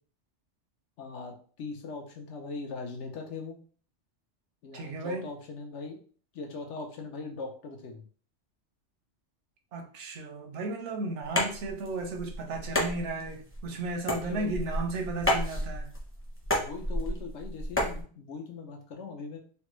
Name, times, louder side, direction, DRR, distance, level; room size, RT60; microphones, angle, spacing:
voice 1, 1.0-3.6 4.6-6.0 6.3-8.0 14.2-14.6 16.6-19.4, left 4 dB, 80° left, 1.0 m, -40 dB
voice 2, 4.7-5.3 9.7-15.9, right 3 dB, 85° right, 1.0 m, -34 dB
sound 1, 11.2-18.0, left 1 dB, 15° left, 0.6 m, -31 dB
3.3 x 2.2 x 3.0 m
omnidirectional pair, 1.2 m